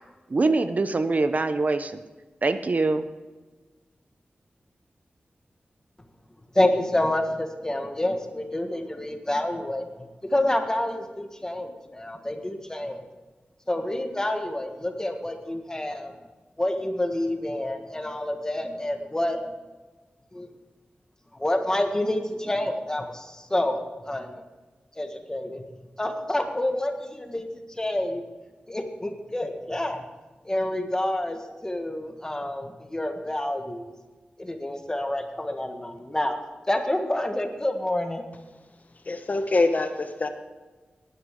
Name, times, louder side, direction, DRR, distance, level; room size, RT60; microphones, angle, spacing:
voice 1, 0.3-2.0 2.4-3.0, right 3 dB, 45° right, 10 dB, 0.7 m, -23 dB
voice 2, 6.5-9.8 10.2-13.0 13.7-16.1 16.6-19.4 20.3-20.5 21.3-23.8 24.0-24.4 24.9-25.6 26.0-28.2 28.7-30.1 30.4-33.9 34.4-36.4 36.7-38.2, left 1 dB, 20° left, 5 dB, 1.5 m, -28 dB
voice 3, 39.1-40.3, left 2 dB, 45° left, 7 dB, 1.0 m, -24 dB
18.0 x 9.9 x 3.7 m, 1.3 s
wide cardioid pair, 95°, 4 cm